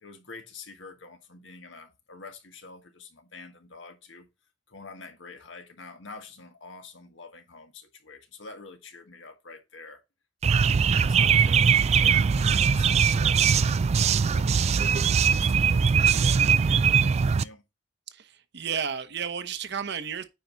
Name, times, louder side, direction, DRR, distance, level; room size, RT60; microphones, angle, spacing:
voice 1, 0.0-4.3 4.7-10.0 10.4-14.9 15.2-17.6, left 3 dB, 75° left, 1.7 m, -46 dB
sound 1, 10.4-17.4, right 6 dB, 35° right, 0.3 m, -21 dB
voice 2, 18.1-20.3, right 7 dB, 60° right, 1.0 m, -32 dB
9.1 x 4.7 x 4.0 m
head